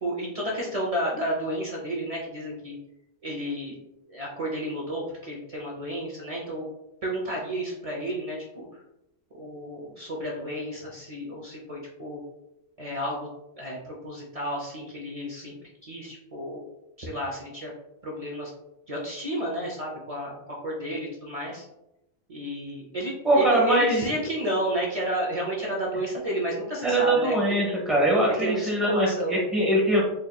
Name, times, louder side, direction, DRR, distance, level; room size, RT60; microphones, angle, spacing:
voice 1, 0.0-2.8 3.2-3.7 4.1-6.6 7.0-8.7 9.3-12.2 12.8-13.3 13.6-15.5 15.8-16.6 17.0-17.7 18.0-18.5 18.9-21.6 22.3-27.6 28.3-29.4, right 1 dB, 50° right, -3 dB, 0.4 m, -31 dB
voice 2, 23.2-24.0 26.8-30.0, right 1 dB, ahead, -4 dB, 0.8 m, -22 dB
4.3 x 2.7 x 2.2 m, 0.88 s
omnidirectional pair, 1.3 m